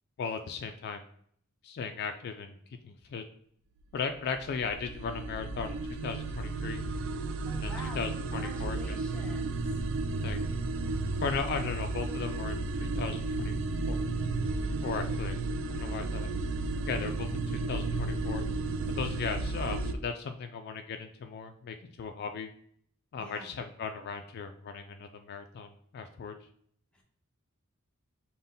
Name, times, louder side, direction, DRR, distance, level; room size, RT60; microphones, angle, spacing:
voice 1, 0.2-1.0 1.6-3.2 3.9-6.8 7.5-9.0 10.2-10.4 11.2-13.6 13.8-14.1 14.8-15.4 15.7-16.3 16.9-18.4 18.9-22.5 23.1-26.4, left 5 dB, 50° left, 6 dB, 0.3 m, -37 dB
sound 1, 4.0-19.9, right 3 dB, 65° right, 0.3 m, -33 dB
voice 2, 7.4-9.8 14.8-15.1 23.2-23.6 26.9-27.0, equal, 5° left, -2 dB, 0.9 m, -47 dB
5.2 x 2.1 x 3.8 m, 0.64 s
head